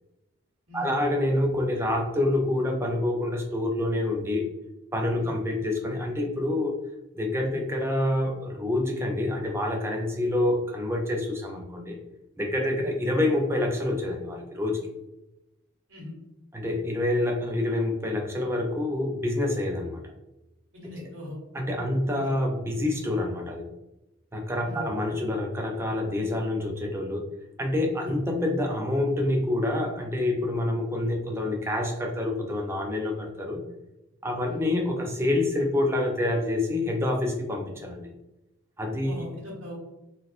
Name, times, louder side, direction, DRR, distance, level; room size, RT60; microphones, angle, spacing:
voice 1, 0.7-4.5 4.9-6.8 7.1-12.0 12.4-14.8 16.5-20.0 20.9-21.1 21.5-23.7 24.3-27.3 27.6-33.6 34.2-38.1 38.8-39.1, left 1 dB, 10° right, 2 dB, 0.4 m, -27 dB
voice 2, 20.7-21.4 24.6-24.8 28.0-28.2 34.5-34.6 39.0-39.8, left 1 dB, 80° right, -3 dB, 1.3 m, -40 dB
4.1 x 2.3 x 2.4 m, 0.95 s
head